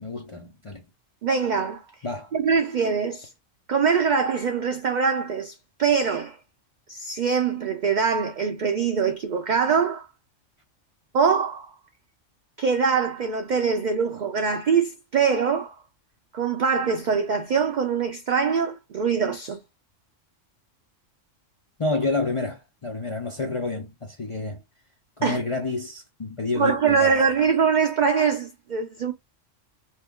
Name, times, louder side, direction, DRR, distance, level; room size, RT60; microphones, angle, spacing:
voice 1, 0.0-0.8 2.0-2.3 21.8-24.6 25.2-27.2, left 3 dB, 45° left, 0.4 m, -29 dB
voice 2, 1.2-1.8 2.3-3.3 3.7-6.4 6.9-10.1 11.1-11.7 12.6-15.8 16.3-19.6 25.2-25.4 26.6-29.1, right 6 dB, 70° right, 0.4 m, -23 dB
2.8 x 2.3 x 3.5 m
omnidirectional pair, 1.3 m